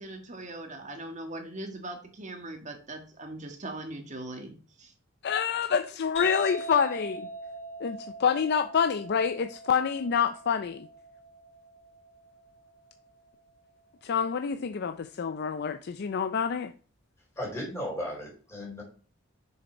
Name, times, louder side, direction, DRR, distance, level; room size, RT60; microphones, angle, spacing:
voice 1, 0.0-4.9, right 2 dB, 40° right, 1.6 m, -40 dB
voice 2, 5.2-7.3 7.8-10.9 14.0-16.7, left 6 dB, 55° left, 0.4 m, -27 dB
sound 1, 6.1-13.6, right 1 dB, 75° left, 4.1 m, -42 dB
voice 3, 17.4-18.8, equal, 15° left, 4.2 m, -35 dB
6.5 x 6.5 x 4.4 m
head